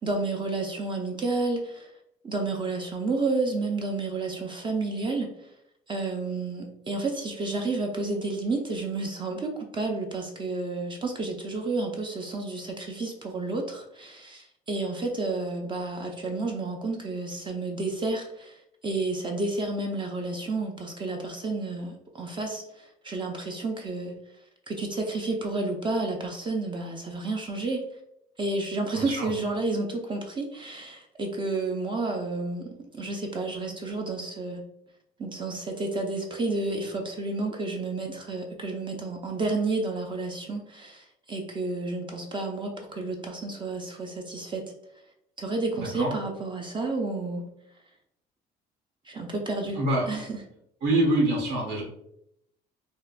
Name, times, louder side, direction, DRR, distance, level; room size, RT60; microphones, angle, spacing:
voice 1, 0.0-1.9 2.2-5.3 5.9-24.1 24.7-27.8 28.4-32.7 33.0-34.6 35.2-44.6 45.4-47.4 49.1-49.8 50.1-50.4, right 3 dB, 30° right, 2 dB, 0.4 m, -31 dB
voice 2, 28.9-29.3 45.8-46.1 49.7-50.1 50.8-51.8, right 1 dB, 80° right, -3 dB, 1.4 m, -25 dB
3.5 x 2.2 x 2.4 m, 0.76 s
cardioid pair, 110°, 17 cm